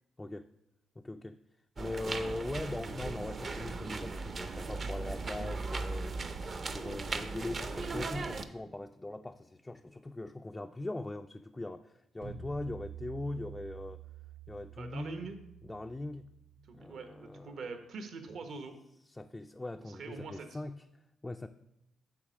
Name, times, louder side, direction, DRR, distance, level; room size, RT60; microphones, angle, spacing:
voice 1, 1.0-1.4 1.8-6.1 6.7-14.0 14.5-15.3 15.6-16.3 16.7-17.7 19.1-21.5, left 2 dB, 15° left, 5 dB, 0.3 m, -41 dB
sound 1, 1.8-8.4, right 3 dB, 40° right, 0.6 m, -38 dB
sound 2, 12.2-17.2, right 8 dB, 85° right, 1.8 m, -49 dB
voice 2, 14.8-15.4 16.7-18.8 20.0-20.5, right 4 dB, 65° right, 7 dB, 1.0 m, -43 dB
7.2 x 4.2 x 6.3 m, 0.82 s
cardioid pair, 90°, 0 cm